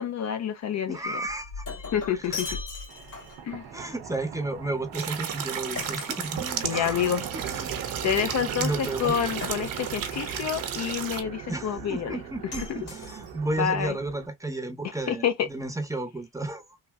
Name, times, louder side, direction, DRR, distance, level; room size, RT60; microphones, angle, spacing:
voice 1, 0.0-1.0 1.9-2.5 3.4-3.6 6.6-7.2 8.0-12.2 12.7-12.8 13.6-13.9 15.1-15.5, left 8 dB, 50° left, 0.5 m, -28 dB
voice 2, 0.9-1.6 2.1-2.6 3.7-8.0 8.4-9.1 11.5-16.8, right 2 dB, 10° right, 0.7 m, -33 dB
Shatter, 1.3-3.5 5.8-7.0 9.4-10.2 12.5-13.6, left 4 dB, 65° left, 2.0 m, -38 dB
sound 1, 2.9-14.3, right 8 dB, 90° right, 0.7 m, -39 dB
sound 2, 4.9-11.2, right 8 dB, 65° right, 0.9 m, -34 dB
3.4 x 2.6 x 2.2 m
cardioid pair, 80°, 37 cm